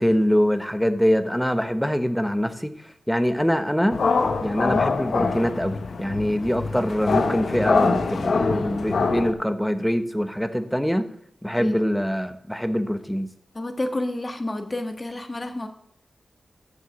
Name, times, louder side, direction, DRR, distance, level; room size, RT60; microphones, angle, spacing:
voice 1, 0.0-2.7 3.1-4.0 4.4-11.1 11.4-13.3, equal, ahead, 9 dB, 1.0 m, -24 dB
sound 1, 3.9-9.3, left 4 dB, 75° left, 0.9 m, -24 dB
voice 2, 13.5-15.7, left 1 dB, 35° left, 6 dB, 1.4 m, -29 dB
7.7 x 6.7 x 5.9 m, 0.70 s
cardioid pair, 50°, 0 cm